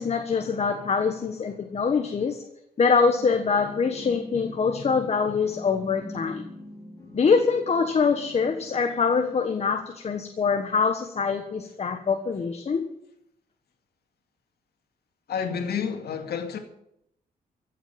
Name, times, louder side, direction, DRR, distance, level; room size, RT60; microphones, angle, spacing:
voice 1, 0.0-2.4 2.8-6.4 7.1-12.8, left 5 dB, 40° left, 6 dB, 1.3 m, -24 dB
sound 1, 3.1-9.5, left 1 dB, 20° left, 3.6 m, -44 dB
voice 2, 15.3-16.6, left 7 dB, 75° left, 4 dB, 2.4 m, -29 dB
15.5 x 7.9 x 9.1 m, 0.77 s
wide cardioid pair, 135°, 16 cm